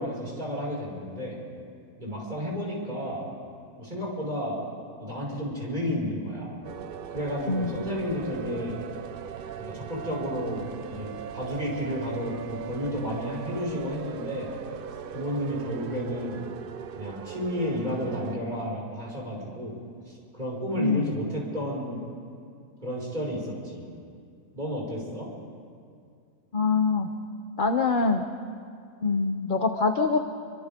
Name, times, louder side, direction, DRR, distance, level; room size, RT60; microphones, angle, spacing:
voice 1, 0.0-1.4 2.0-3.2 3.8-4.6 5.0-6.6 7.1-8.8 9.5-14.5 15.1-16.4 16.9-19.8 20.3-22.0 22.8-23.9 24.5-25.3, equal, 30° right, -4 dB, 5.9 m, -32 dB
sound 1, 6.6-18.4, right 8 dB, 65° right, 0.5 m, -39 dB
voice 2, 20.8-21.1 26.5-27.1 27.6-28.3 29.0-30.2, left 4 dB, 40° left, 4 dB, 0.9 m, -24 dB
29.0 x 25.0 x 3.7 m, 2.3 s
omnidirectional pair, 1.6 m